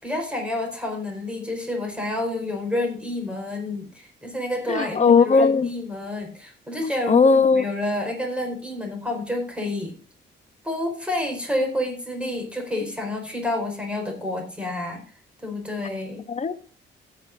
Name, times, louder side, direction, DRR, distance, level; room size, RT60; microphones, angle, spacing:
voice 1, 0.0-10.0 10.6-15.0 15.4-16.2, left 1 dB, 5° right, 4.7 m, -29 dB
voice 2, 4.7-5.7 6.8-7.6 16.3-16.6, left 5 dB, 35° left, 0.8 m, -18 dB
16.0 x 9.4 x 2.6 m
cardioid pair, 90°, 20 cm